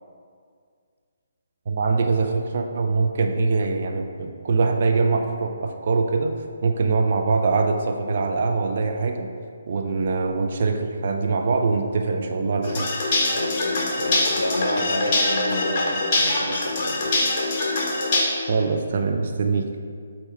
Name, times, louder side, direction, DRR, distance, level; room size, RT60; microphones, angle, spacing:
voice 1, 1.7-6.3 6.6-9.3 9.7-12.9 18.5-19.7, right 4 dB, 45° right, 3 dB, 0.5 m, -23 dB
sound 1, 12.6-18.2, left 2 dB, 30° left, 1.1 m, -23 dB
voice 2, 13.3-17.2, left 2 dB, 75° left, 4 dB, 0.6 m, -31 dB
7.9 x 2.9 x 4.4 m, 2.2 s
figure-of-eight pair, 140°, 0 cm